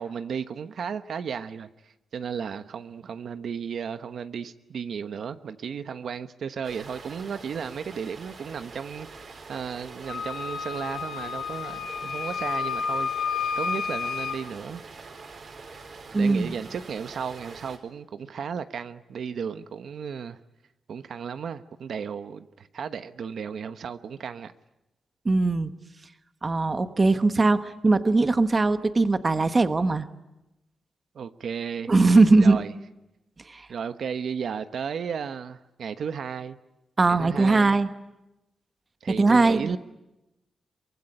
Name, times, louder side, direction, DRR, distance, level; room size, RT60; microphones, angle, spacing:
voice 1, 0.0-13.1 13.6-14.8 16.1-20.4 20.9-24.5 31.1-31.9 32.4-32.7 33.7-36.6 37.1-37.8 39.0-39.8, right 7 dB, 65° right, 11 dB, 1.1 m, -34 dB
sound 1, 6.6-17.8, right 4 dB, 50° right, 4.2 m, -44 dB
Wind instrument woodwind instrument, 10.1-14.4, left 6 dB, 85° left, 2.3 m, -30 dB
voice 2, 16.1-16.5 25.2-25.7 26.4-30.1 31.9-32.6 33.5-33.7 37.0-37.9 39.2-39.8, right 3 dB, 25° right, 11 dB, 1.2 m, -20 dB
23.5 x 23.5 x 10.0 m, 0.97 s
wide cardioid pair, 135°, 0 cm